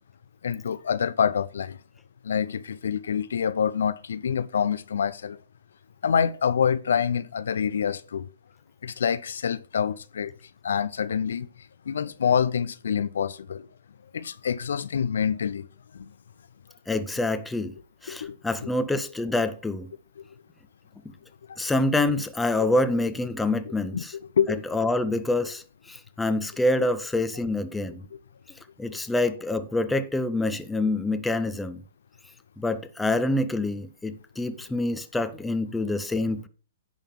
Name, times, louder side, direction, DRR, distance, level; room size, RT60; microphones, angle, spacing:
voice 1, 0.4-1.8 2.2-5.4 6.0-8.3 8.8-10.3 10.6-11.5 11.9-13.7 14.1-15.7 15.9-16.1 18.1-18.4 18.6-18.7 23.9-24.0 24.4-24.6 28.9-29.0, left 7 dB, 75° left, 0.5 m, -26 dB
voice 2, 16.9-17.7 18.0-19.9 21.6-24.1 24.5-28.0 28.8-31.8 32.6-36.5, left 2 dB, 5° left, 0.7 m, -26 dB
10.0 x 3.6 x 7.1 m
hypercardioid pair, 125°, 0 cm